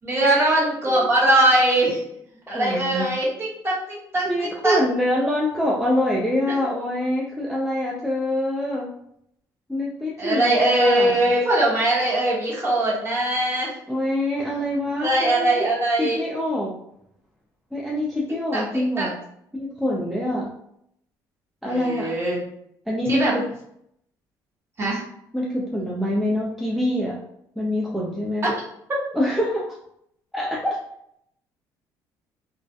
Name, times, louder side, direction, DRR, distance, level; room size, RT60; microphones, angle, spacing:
voice 1, 0.0-2.0 2.5-4.8 10.2-13.7 15.0-16.2 18.5-19.1 21.6-22.4 23.1-23.3 24.8-25.0 28.4-28.5, right 1 dB, 30° right, -5 dB, 1.0 m, -21 dB
voice 2, 2.5-3.1 4.2-8.9 9.7-11.2 13.9-15.7 16.0-16.7 17.7-19.1 19.5-20.5 21.6-22.1 22.9-23.4 25.3-27.2 27.6-28.5 29.1-29.6 30.3-30.8, left 1 dB, ahead, -4 dB, 0.4 m, -25 dB
2.3 x 2.1 x 2.6 m, 0.72 s
cardioid pair, 110°, 8 cm